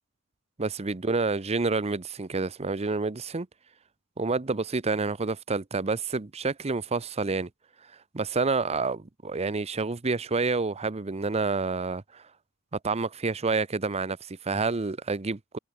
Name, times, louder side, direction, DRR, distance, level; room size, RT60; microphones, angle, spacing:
voice 1, 0.6-3.5 4.2-7.5 8.1-12.2 12.8-15.6, right 4 dB, 30° right, 0.7 m, -28 dB
open air
head